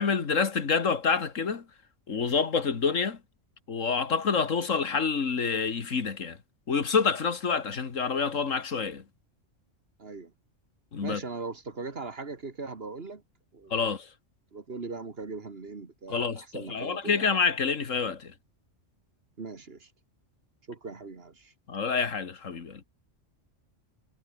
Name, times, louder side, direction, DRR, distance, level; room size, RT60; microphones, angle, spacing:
voice 1, 0.0-1.6 2.1-3.2 3.7-6.4 6.7-9.0 10.9-11.2 13.7-14.1 16.1-18.3 21.7-22.8, left 5 dB, 85° left, 2.2 m, -27 dB
voice 2, 10.0-10.3 11.0-13.2 13.5-13.9 14.5-17.3 19.4-19.9 20.7-21.5, right 4 dB, 50° right, 2.2 m, -39 dB
omnidirectional pair, 1.3 m